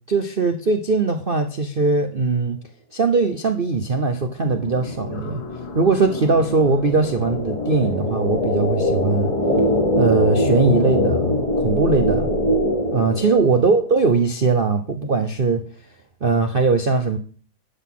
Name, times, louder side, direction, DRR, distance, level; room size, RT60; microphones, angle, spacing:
voice 1, 0.1-2.6 2.9-5.4 5.7-9.3 10.0-12.3 12.9-15.6 16.2-17.2, right 4 dB, 60° right, 6 dB, 0.5 m, -20 dB
sound 1, 4.4-13.0, left 5 dB, 75° left, 2.2 m, -35 dB
sound 2, 4.9-13.8, left 1 dB, 20° left, 1.7 m, -23 dB
11.5 x 4.1 x 7.5 m, 0.42 s
omnidirectional pair, 2.2 m